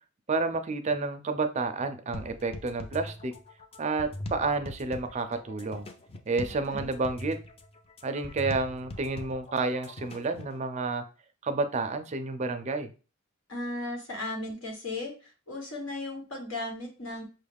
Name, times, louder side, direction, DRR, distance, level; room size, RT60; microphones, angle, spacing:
voice 1, 0.3-3.3 3.8-5.9 6.3-7.4 8.0-11.0 11.4-12.9, right 3 dB, 35° right, 8 dB, 0.4 m, -30 dB
sound 1, 2.1-10.6, left 1 dB, 30° left, 0.5 m, -42 dB
voice 2, 6.4-6.9 13.5-17.2, left 2 dB, 75° left, 1 dB, 1.4 m, -36 dB
5.6 x 2.3 x 3.4 m, 0.35 s
head